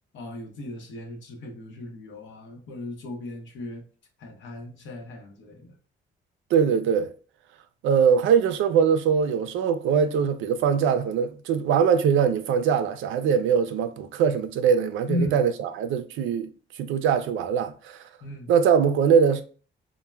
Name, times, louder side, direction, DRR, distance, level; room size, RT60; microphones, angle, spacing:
voice 1, 0.1-3.8 4.2-5.7 15.1-15.4 18.2-18.5, left 2 dB, 70° left, 0.8 m, -35 dB
voice 2, 6.5-7.1 7.8-16.5 16.8-18.0 18.5-19.4, right 7 dB, 80° right, 0.4 m, -22 dB
2.2 x 2.1 x 3.1 m
cardioid pair, 90°, 20 cm